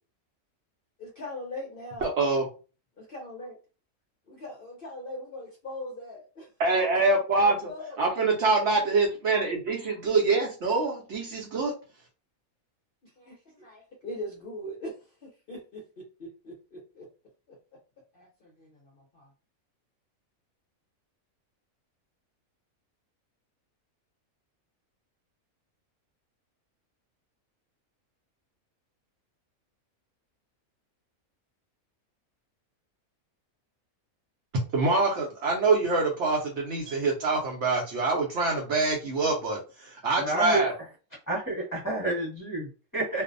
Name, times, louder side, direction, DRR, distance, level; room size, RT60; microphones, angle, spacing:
voice 1, 1.0-2.1 3.0-3.6 4.3-6.5 6.7-8.0 9.9-10.0 13.0-17.1 17.5-17.6 18.1-19.3, left 1 dB, 55° left, -2 dB, 0.6 m, -41 dB
voice 2, 2.0-2.5 6.6-7.5 8.0-11.7 34.7-40.7, right 3 dB, 65° right, -1 dB, 0.8 m, -25 dB
voice 3, 40.2-40.7 41.3-43.2, right 2 dB, 15° left, -4 dB, 1.0 m, -29 dB
2.5 x 2.0 x 2.5 m, 0.34 s
omnidirectional pair, 1.5 m